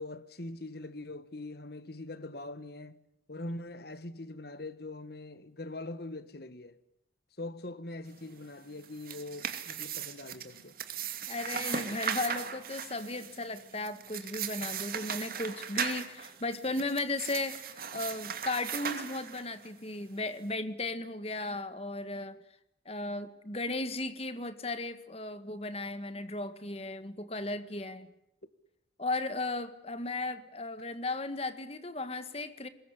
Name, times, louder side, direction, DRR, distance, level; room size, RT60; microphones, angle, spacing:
voice 1, 0.0-3.0 3.3-6.8 7.4-10.8, left 2 dB, 55° left, 1.5 m, -42 dB
sound 1, 8.8-19.7, right 7 dB, 50° right, 2.5 m, -38 dB
voice 2, 11.3-22.4 22.9-28.1 29.0-32.7, left 2 dB, 30° left, 1.9 m, -36 dB
24.0 x 21.5 x 10.0 m
head